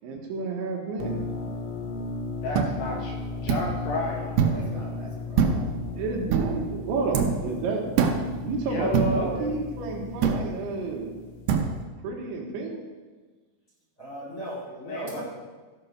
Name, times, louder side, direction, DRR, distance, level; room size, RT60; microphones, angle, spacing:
voice 1, 0.0-1.2 5.0-5.4 6.0-8.0 8.4-11.1 12.0-12.8 15.0-15.2, right 3 dB, 75° right, 0 dB, 3.6 m, -31 dB
sound 1, 1.0-11.9, left 3 dB, 85° left, 3.5 m, -36 dB
voice 2, 2.4-4.6 8.5-9.5 14.9-15.2, left 1 dB, 70° left, -1 dB, 2.9 m, -31 dB
sound 2, 2.5-2.7 3.5-3.7 4.4-4.7 5.4-5.8 6.3-6.6 7.1-7.4 8.0-8.3 8.9-9.3 10.2-10.5 11.5-11.7, right 6 dB, 90° right, 2.2 m, -23 dB
voice 3, 4.0-5.6 14.0-15.2, right 1 dB, 20° left, -6 dB, 2.3 m, -39 dB
15.0 x 6.7 x 5.6 m, 1.3 s
omnidirectional pair, 5.8 m